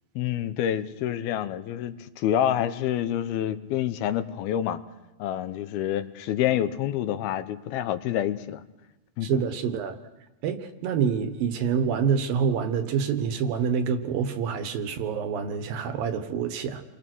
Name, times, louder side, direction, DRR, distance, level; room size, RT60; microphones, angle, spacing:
voice 1, 0.2-4.8 5.2-8.6 9.2-9.4, left 11 dB, 80° left, 11 dB, 2.9 m, -27 dB
voice 2, 9.2-10.0 10.4-16.8, right 7 dB, 70° right, 8 dB, 3.1 m, -27 dB
29.5 x 23.5 x 6.2 m, 1.0 s
omnidirectional pair, 4.3 m